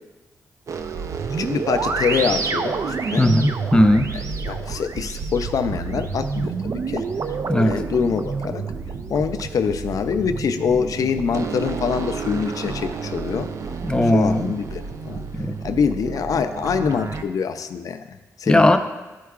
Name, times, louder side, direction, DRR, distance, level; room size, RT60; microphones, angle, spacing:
sound 1, 0.7-17.2, right 4 dB, 60° right, 0.5 m, -29 dB
voice 1, 1.3-3.3 4.4-7.0 7.6-8.6 9.1-13.5 14.1-15.2 15.6-18.0 18.4-18.8, left 6 dB, 70° left, 9 dB, 0.4 m, -24 dB
voice 2, 3.2-4.1 7.5-7.7 13.8-14.5 15.3-15.6 18.5-18.8, left 1 dB, 15° left, 8 dB, 0.5 m, -17 dB
12.0 x 4.6 x 2.4 m, 1.2 s
cardioid pair, 70°, 6 cm